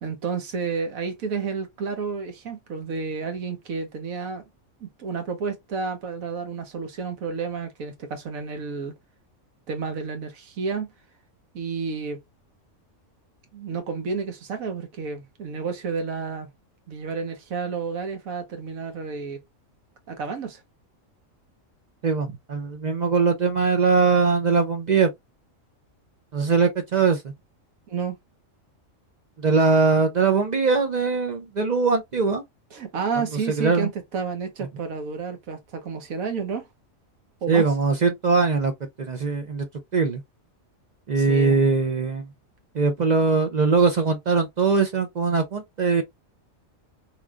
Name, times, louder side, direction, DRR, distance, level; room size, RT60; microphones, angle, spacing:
voice 1, 0.0-4.4 4.8-8.9 9.7-10.9 11.5-12.2 13.5-16.5 16.9-19.4 20.1-20.6 27.9-28.1 32.7-36.7 37.4-37.7 41.2-41.6, right 5 dB, 85° right, 1.4 m, -31 dB
voice 2, 22.0-25.1 26.3-27.2 29.4-32.4 33.6-33.9 37.5-38.7 39.0-39.7 39.9-40.2 41.1-42.2 42.7-46.0, right 4 dB, 50° right, 0.5 m, -21 dB
3.4 x 3.1 x 2.3 m
omnidirectional pair, 1.4 m